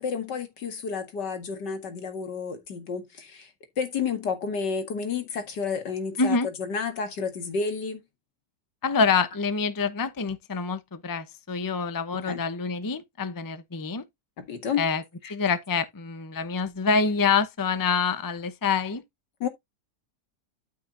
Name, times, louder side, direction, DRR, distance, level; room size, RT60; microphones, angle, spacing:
voice 1, 0.0-3.5 3.8-8.0 12.2-12.4 14.4-14.8 19.4-19.5, left 5 dB, 90° left, 2.5 m, -30 dB
voice 2, 6.2-6.5 8.8-14.0 14.8-15.0 15.3-19.0, left 5 dB, 20° left, 0.6 m, -26 dB
12.5 x 5.8 x 2.7 m
omnidirectional pair, 1.8 m